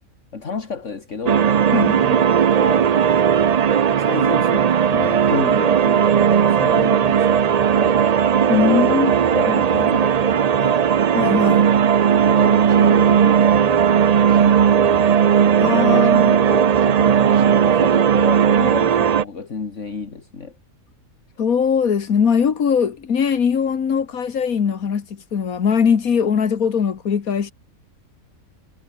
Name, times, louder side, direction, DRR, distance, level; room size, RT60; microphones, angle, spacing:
voice 1, 0.3-1.5 2.0-2.2 2.5-2.9 3.7-8.1 8.6-10.9 12.2-15.2 15.8-16.1 16.5-20.6, left 5 dB, 55° left, 2.4 m, -32 dB
sound 1, 1.3-19.2, right 8 dB, 75° right, 0.3 m, -16 dB
voice 2, 1.7-2.1 8.5-9.1 9.5-9.6 11.1-11.7 15.6-16.4 21.4-27.5, left 7 dB, 80° left, 2.0 m, -20 dB
omnidirectional pair, 1.5 m